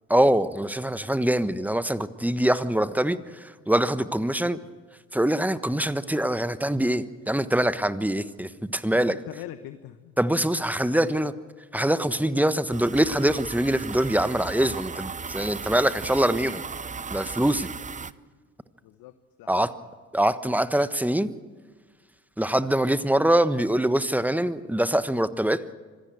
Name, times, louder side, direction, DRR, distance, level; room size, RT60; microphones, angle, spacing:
voice 1, 0.1-3.2 3.7-4.6 5.1-9.2 10.2-11.3 11.7-16.6 17.1-17.7 19.5-19.7 20.1-21.3 22.4-25.6, right 1 dB, 5° right, 14 dB, 1.2 m, -24 dB
voice 2, 8.9-10.1 10.9-11.2 18.8-19.6, left 13 dB, 65° left, 11 dB, 1.2 m, -42 dB
sound 1, 12.7-18.1, right 5 dB, 20° right, 0.7 m, -36 dB
25.5 x 17.0 x 8.0 m, 1.5 s
hypercardioid pair, 55°, 39 cm